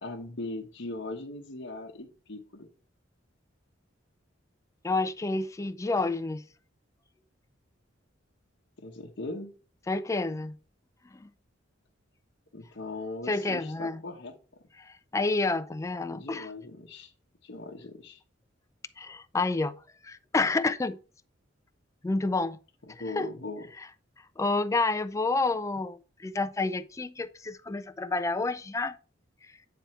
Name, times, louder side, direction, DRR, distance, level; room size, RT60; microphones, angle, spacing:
voice 1, 0.0-2.7 8.8-9.5 12.5-14.3 16.1-17.1 17.4-18.2 22.9-23.7, left 2 dB, 65° left, 1.0 m, -39 dB
voice 2, 4.8-6.4 9.9-10.6 11.1-11.3 13.3-14.0 14.8-16.5 19.0-19.8 20.0-21.0 22.0-22.6 22.9-23.3 24.4-29.0, left 3 dB, 15° left, 0.3 m, -29 dB
9.3 x 3.4 x 4.3 m
head